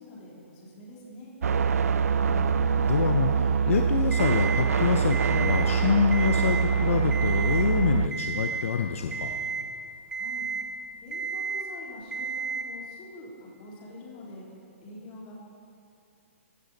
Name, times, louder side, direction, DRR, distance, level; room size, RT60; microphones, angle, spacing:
voice 1, 0.0-1.3 10.1-10.5 11.0-14.4 14.8-15.3, left 1 dB, 30° left, -4 dB, 3.1 m, -45 dB
sound 1, 1.4-8.1, right 6 dB, 90° right, 0.4 m, -24 dB
voice 2, 2.2-9.3, left 7 dB, 70° left, 5 dB, 0.7 m, -27 dB
Alarm, 4.1-4.7 5.1-5.7 6.0-6.7 7.1-7.7 8.1-8.7 9.1-9.7 10.1-10.7 11.1-11.7 12.1-12.7, right 5 dB, 10° right, 0.7 m, -32 dB
15.5 x 9.7 x 4.0 m, 2.5 s
hypercardioid pair, 155°, 8 cm